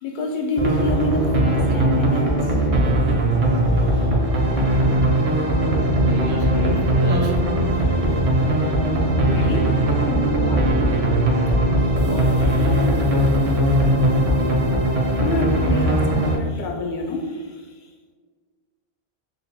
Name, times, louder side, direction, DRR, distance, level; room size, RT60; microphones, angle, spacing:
voice 1, 0.0-2.6 3.6-4.2 7.7-10.8 11.8-12.7 15.1-17.8, left 2 dB, 60° left, 0.6 m, -29 dB
sound 1, 0.6-16.4, right 1 dB, 40° right, 0.6 m, -19 dB
voice 2, 5.9-7.9 12.0-13.1, right 1 dB, 90° right, 0.9 m, -31 dB
3.8 x 2.4 x 2.6 m
omnidirectional pair, 1.0 m